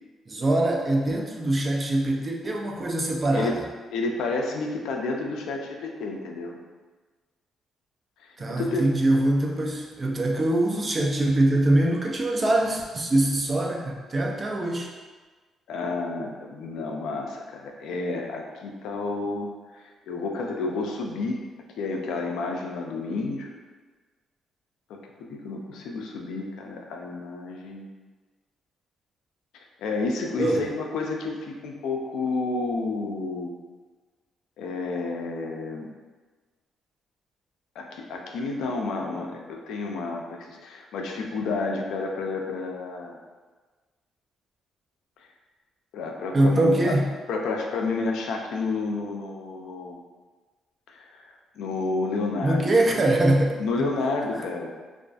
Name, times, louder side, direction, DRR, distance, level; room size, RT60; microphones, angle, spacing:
voice 1, 0.3-3.6 8.4-14.9 30.4-30.7 46.3-47.1 52.4-53.9, right 1 dB, 30° right, 0 dB, 0.4 m, -23 dB
voice 2, 3.9-6.6 8.2-8.9 15.7-21.4 21.8-23.5 24.9-27.9 29.5-33.5 34.6-35.9 37.8-43.2 45.9-46.9 47.3-50.0 50.9-51.3 51.6-52.6 53.6-54.7, left 3 dB, 85° left, 1 dB, 0.3 m, -30 dB
2.4 x 2.4 x 2.3 m, 1.4 s
cardioid pair, 90°, 0 cm